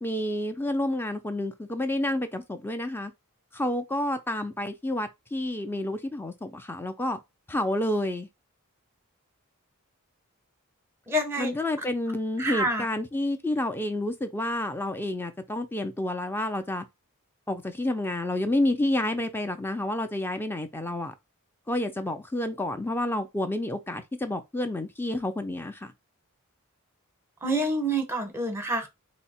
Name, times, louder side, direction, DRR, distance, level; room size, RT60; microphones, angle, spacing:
voice 1, 0.0-3.1 3.5-7.2 7.5-8.3 11.4-16.8 17.5-21.1 21.7-25.9, left 1 dB, 10° left, 0.5 m, -29 dB
voice 2, 11.1-11.5 12.4-12.8 27.4-28.9, right 1 dB, 10° right, 0.9 m, -27 dB
3.6 x 2.0 x 4.2 m
head